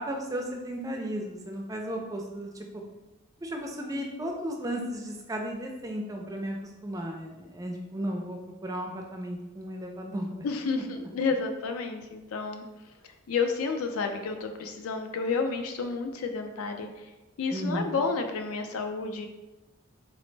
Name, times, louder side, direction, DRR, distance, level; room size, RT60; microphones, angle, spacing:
voice 1, 0.0-2.7 3.4-6.6 6.8-10.5 10.8-10.9 17.5-18.0, equal, 15° right, 1 dB, 0.3 m, -34 dB
voice 2, 10.4-12.6 13.3-16.9 17.4-19.3, left 4 dB, 85° left, 5 dB, 0.4 m, -30 dB
4.0 x 2.0 x 3.2 m, 1.0 s
head